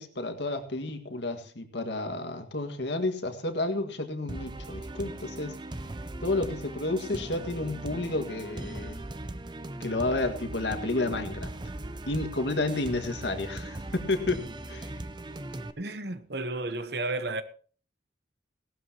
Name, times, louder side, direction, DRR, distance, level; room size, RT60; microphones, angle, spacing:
voice 1, 0.0-5.6 6.2-9.0 9.8-11.5 12.1-14.9, left 2 dB, 75° left, 1.9 m, -31 dB
sound 1, 4.3-15.7, right 1 dB, 25° right, 0.6 m, -39 dB
voice 2, 15.8-17.4, right 2 dB, 65° right, 1.1 m, -32 dB
17.5 x 12.5 x 2.9 m
head